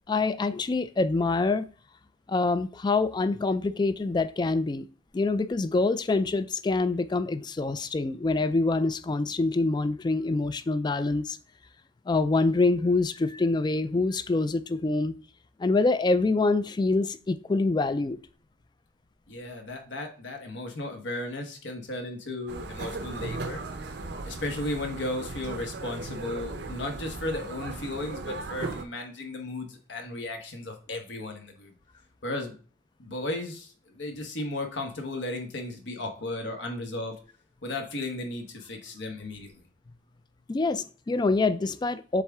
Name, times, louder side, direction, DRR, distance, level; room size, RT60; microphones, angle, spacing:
voice 1, 0.1-1.7 2.3-4.9 5.1-11.4 12.1-15.2 15.6-18.2 40.5-42.2, left 3 dB, 25° left, 0.3 m, -25 dB
voice 2, 19.3-23.6 24.2-31.7 32.2-32.5 33.0-37.2 37.6-39.6, left 2 dB, 80° left, 1.2 m, -35 dB
sound 1, 22.5-28.8, right 3 dB, 65° right, 0.6 m, -37 dB
7.4 x 3.6 x 3.5 m
head